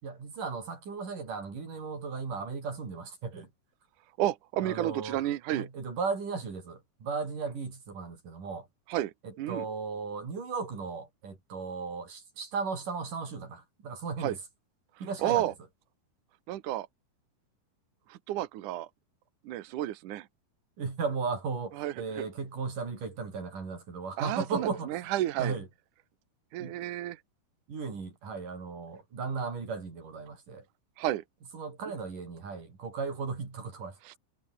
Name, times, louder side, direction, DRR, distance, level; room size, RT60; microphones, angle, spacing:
voice 1, 0.0-3.5 4.6-5.3 5.5-8.7 9.2-14.4 15.0-15.5 20.8-25.1 25.4-25.7 26.6-26.8 27.7-30.6 31.5-34.2, right 4 dB, 45° right, 7.0 m, -36 dB
voice 2, 4.2-5.7 8.9-9.7 14.2-14.4 15.2-15.5 16.5-16.9 18.1-18.9 19.4-20.3 21.8-22.3 24.2-25.6 26.5-27.2 31.0-31.2 34.1-34.2, right 13 dB, 70° right, 1.9 m, -31 dB
omnidirectional pair, 5.2 m